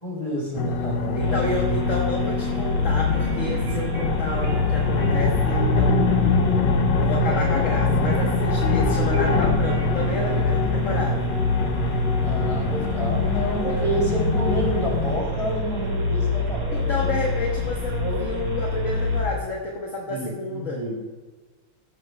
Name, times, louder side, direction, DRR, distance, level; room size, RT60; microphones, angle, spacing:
voice 1, 0.0-1.5 12.2-17.2 18.0-18.2 20.1-20.9, right 1 dB, 15° left, -2 dB, 3.0 m, -29 dB
sound 1, 0.5-15.2, left 3 dB, 65° left, 1.2 m, -24 dB
voice 2, 1.1-6.2 7.0-11.2 16.7-20.8, left 2 dB, 45° left, -2 dB, 1.2 m, -30 dB
sound 2, 1.2-19.2, left 3 dB, 65° right, 3.1 m, -26 dB
sound 3, 2.9-10.9, right 5 dB, 45° right, 1.6 m, -38 dB
15.0 x 11.0 x 2.2 m, 1.3 s
omnidirectional pair, 2.4 m